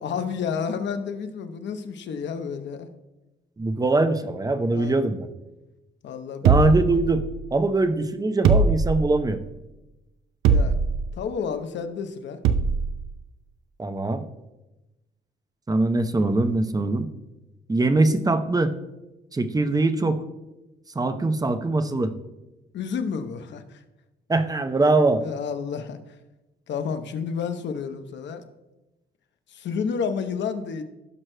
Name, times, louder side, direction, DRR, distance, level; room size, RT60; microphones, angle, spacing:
voice 1, 0.0-2.9 4.7-5.0 6.0-6.5 10.5-10.8 11.2-12.4 22.7-23.8 25.2-26.0 26.7-28.4 29.5-30.8, left 6 dB, 65° left, 8 dB, 0.9 m, -30 dB
voice 2, 3.6-5.3 6.4-7.2 7.5-9.4 13.8-14.2 15.7-17.1 17.7-18.7 19.3-20.2 20.9-22.1 24.3-25.2, right 2 dB, 20° right, 9 dB, 0.7 m, -22 dB
sound 1, 6.5-7.6 8.5-9.3 10.5-11.1 12.5-12.9, right 4 dB, 80° right, 0.6 m, -21 dB
16.0 x 6.1 x 2.2 m, 1.0 s
cardioid pair, 90°, 20 cm